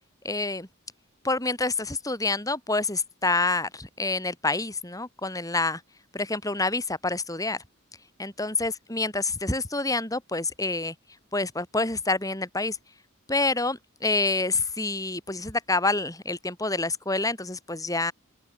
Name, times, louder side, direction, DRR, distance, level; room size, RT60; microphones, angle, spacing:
voice 1, 0.2-0.7 1.2-5.8 6.1-7.6 8.2-10.9 11.3-12.8 13.3-18.1, left 3 dB, 15° left, 5.5 m, -27 dB
open air
head